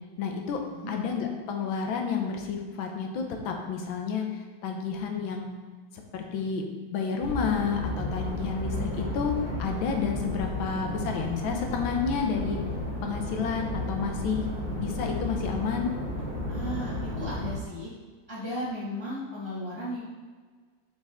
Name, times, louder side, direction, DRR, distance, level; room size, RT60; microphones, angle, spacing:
voice 1, 0.2-0.6 0.9-5.5 6.1-9.3 9.6-12.6 13.0-14.4 14.7-15.9, left 6 dB, 85° left, 3 dB, 1.6 m, -30 dB
sound 1, 7.2-17.5, left 1 dB, 70° right, 2.9 m, -33 dB
voice 2, 16.5-17.9 18.3-20.0, equal, 15° left, -8 dB, 1.2 m, -35 dB
6.7 x 4.6 x 3.5 m, 1.5 s
omnidirectional pair, 2.1 m